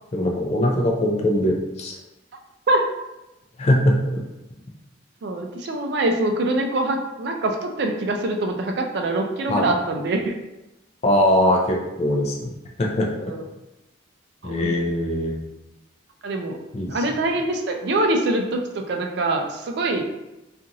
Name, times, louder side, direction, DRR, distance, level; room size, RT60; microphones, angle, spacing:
voice 1, 0.1-2.0 3.6-4.2 9.5-9.7 11.0-12.5 12.8-13.3 14.4-15.4 16.7-17.0, left 1 dB, 30° left, 0 dB, 0.4 m, -21 dB
voice 2, 5.2-10.4 13.3-13.4 14.4-14.7 16.2-16.6 16.9-20.0, right 2 dB, 55° right, 3 dB, 0.3 m, -24 dB
2.8 x 2.4 x 2.6 m, 0.97 s
head